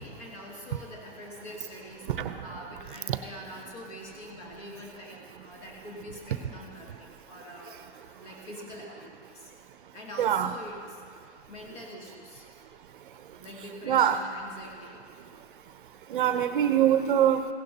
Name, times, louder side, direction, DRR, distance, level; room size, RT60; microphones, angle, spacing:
voice 1, 0.0-2.1 2.4-7.8 8.2-9.5 9.9-10.8 11.5-12.5 13.4-15.0 15.3-15.4, left 1 dB, 50° left, -2 dB, 2.3 m, -44 dB
voice 2, 10.2-10.5 13.8-14.2 16.1-17.5, right 10 dB, 50° right, 10 dB, 0.6 m, -23 dB
16.5 x 11.5 x 2.8 m, 2.1 s
hypercardioid pair, 160°, 34 cm